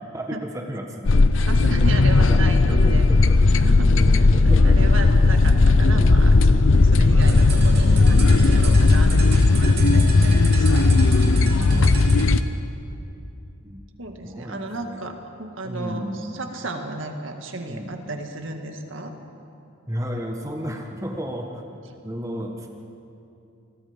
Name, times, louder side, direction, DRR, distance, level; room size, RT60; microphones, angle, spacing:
voice 1, 0.1-1.2 2.2-3.4 3.9-4.8 11.5-12.2 13.6-13.8 14.2-15.2 15.6-16.2 17.7-17.9 19.9-21.7 22.0-22.7, equal, 15° right, 1 dB, 1.5 m, -33 dB
sound 1, 1.1-12.4, left 3 dB, 70° left, 0.7 m, -16 dB
voice 2, 1.1-3.1 3.6-10.9 11.7-12.1 14.0-19.2, right 2 dB, 70° right, 4 dB, 2.0 m, -34 dB
sound 2, 7.1-12.3, right 4 dB, 50° right, 3.1 m, -35 dB
28.0 x 21.0 x 5.2 m, 2.7 s
head